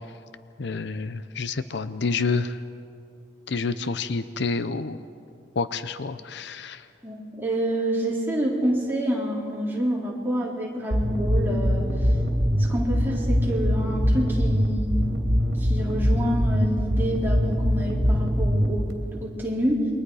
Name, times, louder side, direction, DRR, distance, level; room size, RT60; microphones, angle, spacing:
voice 1, 0.6-2.6 3.5-5.0 5.6-6.8, left 4 dB, 60° left, 12 dB, 0.6 m, -28 dB
voice 2, 7.0-11.9 12.6-15.1 15.6-18.9 19.2-19.9, equal, 10° right, -4 dB, 3.8 m, -27 dB
sound 1, 10.9-18.9, equal, 60° right, 2.9 m, -22 dB
28.5 x 23.0 x 4.8 m, 2.5 s
head